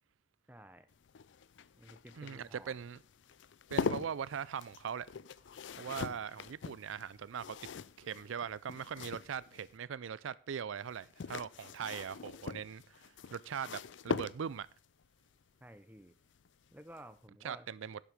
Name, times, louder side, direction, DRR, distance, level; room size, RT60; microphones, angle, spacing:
voice 1, 0.5-0.9 1.7-2.7 15.6-16.1 16.7-17.7, right 1 dB, 10° right, 0.8 m, -53 dB
sound 1, 0.9-9.7 10.9-14.8 16.4-16.7 17.0-17.1, left 5 dB, 65° left, 0.4 m, -42 dB
voice 2, 2.2-3.0 3.7-5.1 5.8-7.6 8.0-14.7 17.4-18.0, right 7 dB, 80° right, 0.4 m, -41 dB
11.5 x 7.6 x 4.9 m
head